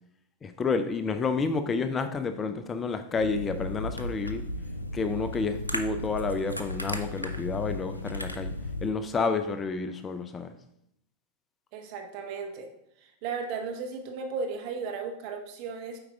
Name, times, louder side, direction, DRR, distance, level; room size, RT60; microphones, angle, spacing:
voice 1, 0.4-4.4 4.9-8.5 8.8-10.5, left 4 dB, 20° left, 9 dB, 0.4 m, -30 dB
sound 1, 3.2-8.9, left 1 dB, 85° left, 0.5 m, -35 dB
voice 2, 11.7-12.7 13.0-16.0, right 5 dB, 45° right, 4 dB, 0.8 m, -35 dB
7.8 x 4.7 x 3.6 m, 0.78 s
figure-of-eight pair, 90°, 0 cm